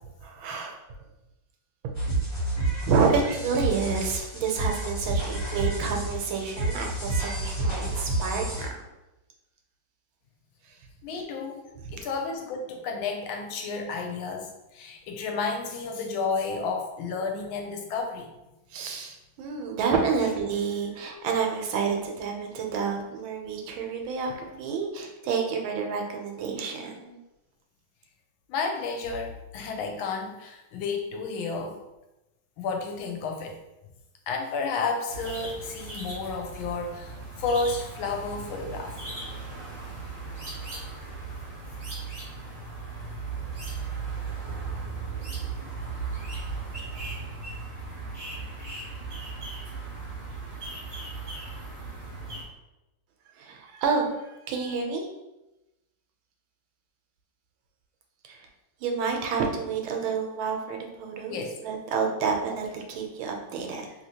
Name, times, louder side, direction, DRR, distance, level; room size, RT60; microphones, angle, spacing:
voice 1, 0.2-0.8 2.8-8.7 11.1-11.2 18.7-27.2 53.4-55.1 58.2-58.5 58.8-63.9, right 5 dB, 85° right, 3 dB, 1.4 m, -29 dB
sound 1, 1.9-8.7, right 2 dB, 50° left, 1.5 m, -29 dB
voice 2, 11.0-18.3 28.5-31.8 32.6-33.6 34.3-39.0 61.3-61.6, left 4 dB, 85° left, 3 dB, 1.4 m, -31 dB
sound 2, 35.1-52.4, right 4 dB, 50° right, 0.7 m, -37 dB
3.1 x 2.8 x 2.8 m, 0.98 s
omnidirectional pair, 2.2 m